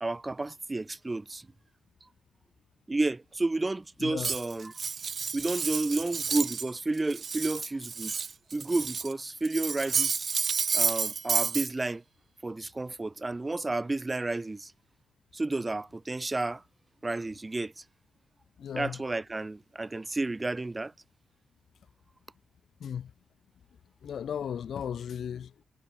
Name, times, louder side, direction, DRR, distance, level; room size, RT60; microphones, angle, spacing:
voice 1, 0.0-1.5 2.9-4.7 5.3-8.1 8.5-10.3 10.7-12.0 12.4-14.7 15.3-16.6 17.0-17.7 18.7-20.9, right 2 dB, 20° right, 1.8 m, -31 dB
voice 2, 4.0-4.3 18.6-19.0 22.8-23.1 24.0-25.6, left 8 dB, 65° left, 1.7 m, -36 dB
Cutlery silverware, 4.2-6.7 7.0-9.1 9.4-11.7, right 5 dB, 45° right, 0.9 m, -30 dB
cardioid pair, 120°, 0 cm